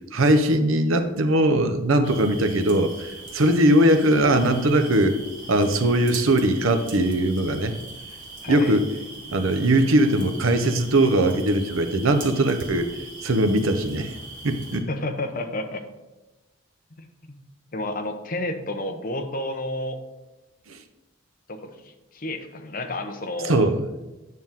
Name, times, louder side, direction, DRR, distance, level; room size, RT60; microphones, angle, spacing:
voice 1, 0.1-5.2 5.5-7.7 8.5-8.9 9.3-12.9 13.2-14.1 14.4-14.9 20.7-20.8 23.4-23.8, right 1 dB, 85° right, 7 dB, 0.8 m, -20 dB
sound 1, 2.0-14.8, right 2 dB, 65° right, 2.0 m, -41 dB
voice 2, 8.4-8.8 14.9-15.8 17.0-17.4 17.7-20.0 21.5-23.7, left 1 dB, 40° left, 5 dB, 0.8 m, -31 dB
9.4 x 6.0 x 3.6 m, 1.1 s
head